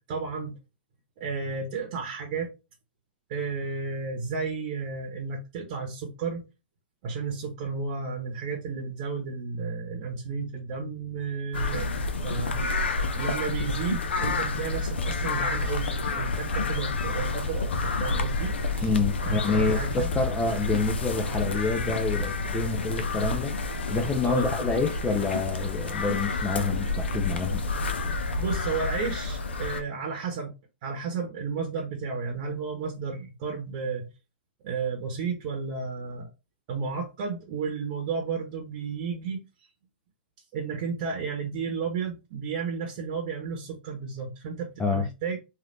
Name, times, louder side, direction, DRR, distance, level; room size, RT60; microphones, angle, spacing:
voice 1, 0.1-0.5 1.2-2.5 3.3-6.4 7.0-11.9 12.2-12.6 13.1-18.9 19.2-20.1 24.2-24.5 28.4-30.5 30.8-34.1 34.6-36.3 36.7-39.4 40.5-45.4, right 5 dB, 45° right, 0.9 m, -32 dB
sound 1, 11.5-29.8, left 3 dB, 75° left, 0.6 m, -29 dB
voice 2, 18.8-23.5 23.9-27.6 44.8-45.1, left 4 dB, 10° left, 0.4 m, -27 dB
3.2 x 2.5 x 2.6 m
hypercardioid pair, 120°, 6 cm